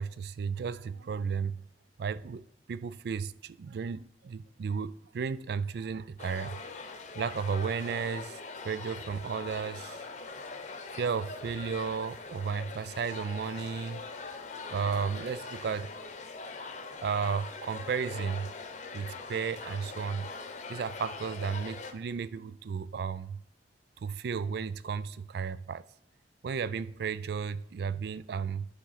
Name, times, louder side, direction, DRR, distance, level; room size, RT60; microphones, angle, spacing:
voice 1, 0.0-1.6 2.0-2.4 2.7-6.6 7.1-8.4 8.6-10.0 10.9-14.0 14.7-15.9 17.0-18.5 18.9-20.3 20.7-23.4 24.0-25.8 26.4-28.7, right 6 dB, 65° right, 0.4 m, -33 dB
sound 1, 6.2-21.9, left 4 dB, 45° left, 0.8 m, -42 dB
10.0 x 3.6 x 5.7 m
head